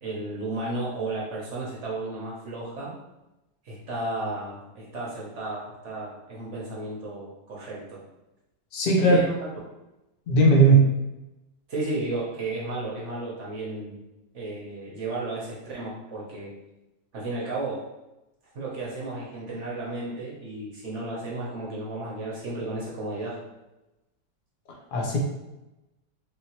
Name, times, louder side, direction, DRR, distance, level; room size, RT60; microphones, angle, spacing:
voice 1, 0.0-2.9 3.6-8.0 9.0-9.3 11.7-14.0 14.3-16.5 17.1-17.8 18.5-23.4, right 2 dB, 55° right, -4 dB, 0.9 m, -33 dB
voice 2, 8.7-9.2 10.3-10.9 24.9-25.2, right 2 dB, 50° left, -1 dB, 0.6 m, -18 dB
3.4 x 2.8 x 2.8 m, 0.98 s
omnidirectional pair, 1.8 m